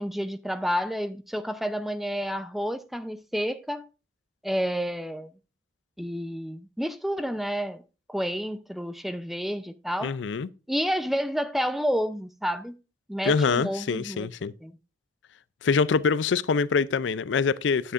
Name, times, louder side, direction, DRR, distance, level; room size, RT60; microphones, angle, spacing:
voice 1, 0.0-3.9 4.4-5.3 6.0-7.8 8.1-10.2 10.7-12.8 13.1-14.3 14.6-14.7, equal, ahead, 0.5 m, -30 dB
voice 2, 10.0-10.5 13.2-14.5 15.6-17.9, left 5 dB, 80° left, 0.4 m, -24 dB
11.5 x 9.1 x 2.5 m
head